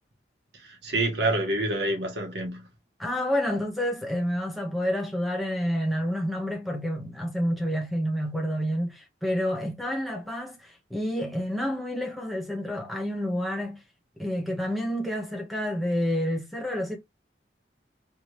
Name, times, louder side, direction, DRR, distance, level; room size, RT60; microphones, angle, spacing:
voice 1, 0.6-2.7, right 2 dB, 75° right, 1.2 m, -27 dB
voice 2, 3.0-13.8 14.2-17.0, equal, ahead, 1.1 m, -29 dB
3.4 x 2.5 x 3.1 m
head